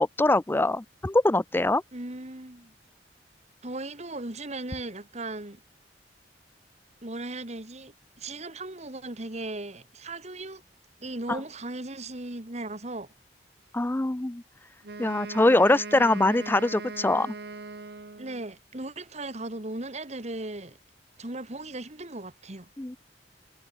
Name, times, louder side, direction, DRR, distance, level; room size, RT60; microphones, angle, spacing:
voice 1, 0.0-1.8 13.7-14.4 15.0-17.3 22.8-23.0, left 2 dB, 10° left, 0.4 m, -23 dB
voice 2, 1.9-2.7 3.6-5.6 7.0-10.6 11.0-13.1 18.2-20.8 21.2-22.7, right 2 dB, 40° right, 2.3 m, -37 dB
Wind instrument woodwind instrument, 14.8-18.5, right 3 dB, 65° right, 1.1 m, -40 dB
head